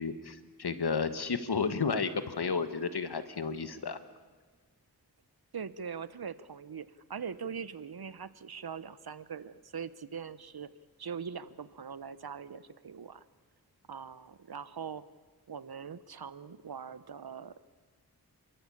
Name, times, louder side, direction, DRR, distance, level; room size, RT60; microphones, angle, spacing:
voice 1, 0.0-4.0, left 5 dB, 75° left, 11 dB, 1.6 m, -32 dB
voice 2, 5.5-10.7 11.0-13.2 13.9-15.0 15.5-17.6, right 6 dB, 70° right, 16 dB, 1.0 m, -42 dB
28.5 x 13.5 x 8.7 m, 1.5 s
wide cardioid pair, 55°, 39 cm